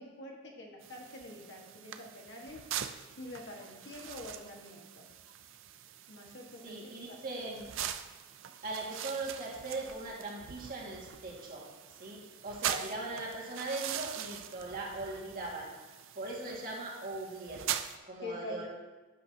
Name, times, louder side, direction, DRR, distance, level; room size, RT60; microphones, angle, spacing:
voice 1, 0.0-2.6 3.2-5.1 6.1-6.7 7.1-7.5 18.2-18.7, left 2 dB, 55° left, 0 dB, 1.5 m, -46 dB
sound 1, 0.8-18.0, right 9 dB, 60° right, 0.5 m, -42 dB
voice 2, 6.6-7.7 8.6-11.7 12.0-15.7 16.2-17.6 18.1-18.7, right 2 dB, 40° right, -3 dB, 1.9 m, -39 dB
10.5 x 8.6 x 2.8 m, 1.2 s
head